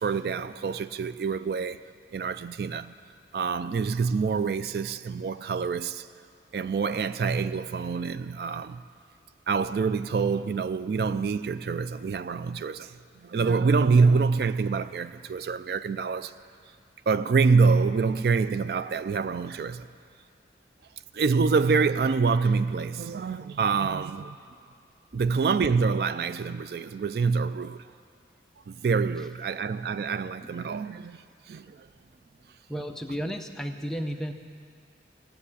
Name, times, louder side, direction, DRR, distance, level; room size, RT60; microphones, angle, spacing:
voice 1, 0.0-1.8 2.1-2.9 3.3-6.1 6.5-8.8 9.5-12.9 13.2-16.3 17.1-19.9 21.1-24.4 25.1-27.8 28.7-31.9, right 5 dB, 60° right, 0.3 m, -26 dB
voice 2, 32.7-34.3, equal, 5° left, 0.6 m, -33 dB
16.5 x 8.2 x 9.8 m
head